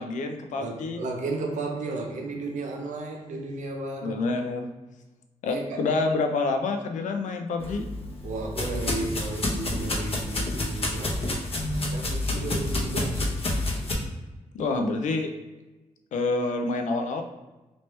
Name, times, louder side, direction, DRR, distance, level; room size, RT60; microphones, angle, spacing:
voice 1, 0.0-1.0 4.0-4.7 5.4-7.8 14.5-15.3 16.1-17.2, left 3 dB, 90° left, 5 dB, 0.4 m, -27 dB
voice 2, 0.6-4.2 5.4-5.9 8.2-11.4 11.7-13.3, right 2 dB, 85° right, 1 dB, 0.6 m, -33 dB
sound 1, 7.6-13.9, left 2 dB, 50° left, 0.8 m, -29 dB
3.1 x 2.9 x 3.2 m, 1.1 s
cardioid pair, 60°, 12 cm